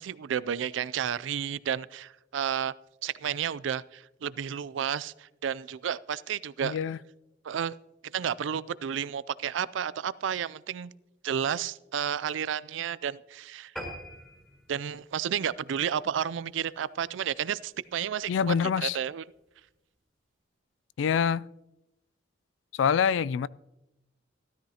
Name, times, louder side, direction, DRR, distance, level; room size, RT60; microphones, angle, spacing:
voice 1, 0.0-2.7 3.0-6.8 7.4-7.7 8.1-10.9 11.2-13.7 14.7-19.2, right 8 dB, 80° right, 0.4 m, -32 dB
voice 2, 6.6-7.0 18.3-19.0 21.0-21.5 22.7-23.5, left 7 dB, 85° left, 0.3 m, -25 dB
sound 1, 13.8-16.5 17.0-17.2 17.6-17.7 18.0-18.1 18.4-18.5, equal, 5° left, 2.4 m, -44 dB
15.5 x 13.0 x 2.8 m
head